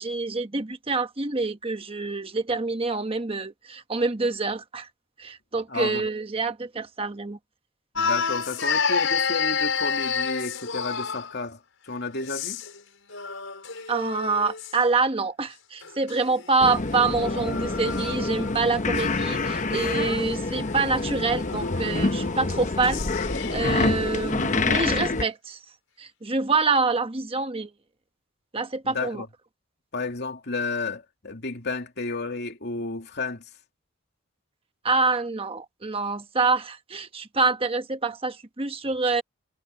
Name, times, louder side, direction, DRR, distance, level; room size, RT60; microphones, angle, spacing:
voice 1, 0.0-4.9 5.2-7.4 13.9-23.0 23.5-25.6 26.0-27.7 28.5-29.2 34.8-39.2, right 3 dB, 30° right, 1.2 m, -26 dB
voice 2, 5.7-6.0 8.0-12.6 28.8-29.3 29.9-33.4, left 3 dB, 55° left, 2.7 m, -32 dB
sound 1, 7.9-11.4 12.2-12.8 13.1-14.8 15.8-18.6 18.9-24.6, left 5 dB, 70° left, 6.4 m, -31 dB
sound 2, 16.6-25.2, left 3 dB, 40° left, 1.0 m, -27 dB
head